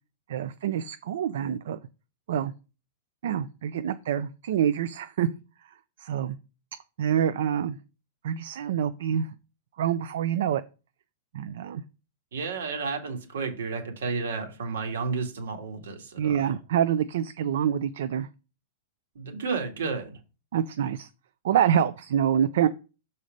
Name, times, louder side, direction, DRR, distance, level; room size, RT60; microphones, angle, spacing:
voice 1, 0.3-1.8 2.3-2.5 3.2-5.3 6.0-6.4 7.0-7.8 8.2-9.3 9.8-10.6 11.3-11.8 16.2-18.3 20.5-21.1 21.4-22.7, right 9 dB, 60° right, 0.4 m, -26 dB
voice 2, 12.3-16.5 19.2-20.2, right 4 dB, 85° right, 1.9 m, -32 dB
6.4 x 4.2 x 5.2 m
supercardioid pair, 180°, 0 cm